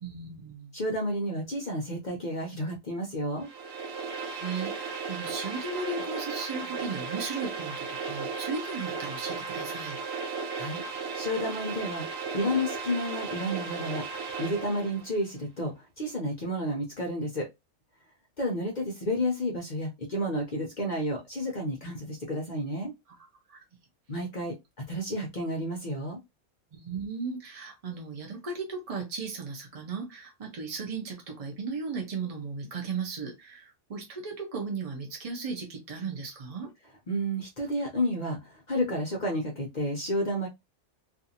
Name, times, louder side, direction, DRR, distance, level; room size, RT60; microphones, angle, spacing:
voice 1, 0.0-0.7 4.3-10.0 23.5-23.6 26.7-36.7, right 4 dB, 50° right, 0.4 m, -36 dB
voice 2, 0.7-3.5 10.5-10.8 11.1-17.5 18.4-22.9 24.1-24.5 24.9-26.2 37.1-40.5, equal, 55° left, 0.5 m, -31 dB
sound 1, 3.4-15.0, right 5 dB, 70° right, 1.0 m, -35 dB
2.5 x 2.5 x 2.7 m
omnidirectional pair, 1.5 m